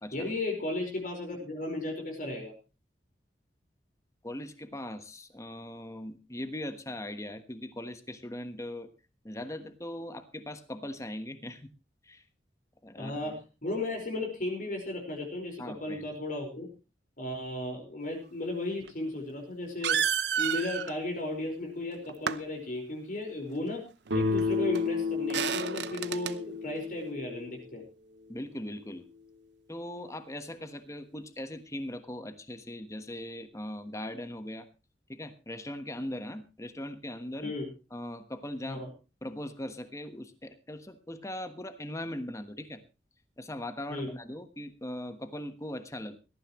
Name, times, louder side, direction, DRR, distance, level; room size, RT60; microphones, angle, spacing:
voice 1, 0.1-2.5 13.0-13.3 13.6-16.7 17.2-20.0 20.4-23.8 24.1-27.8 37.4-37.7 38.7-38.9 43.9-44.1, left 2 dB, 50° left, 2 dB, 4.9 m, -35 dB
voice 2, 4.2-8.9 9.2-11.7 12.0-12.2 12.8-13.4 15.6-16.1 28.3-29.0 29.7-34.7 35.1-37.5 37.9-38.9 39.2-42.8 43.4-46.2, left 1 dB, 15° left, 9 dB, 1.3 m, -40 dB
sound 1, 18.9-19.0 19.8-20.9 22.1-22.4 24.4-24.5 24.7-24.8 25.3-26.3, right 8 dB, 70° right, 0.8 m, -30 dB
sound 2, 24.1-27.7, left 4 dB, 90° right, 2.2 m, -32 dB
18.0 x 14.0 x 3.1 m, 0.31 s
head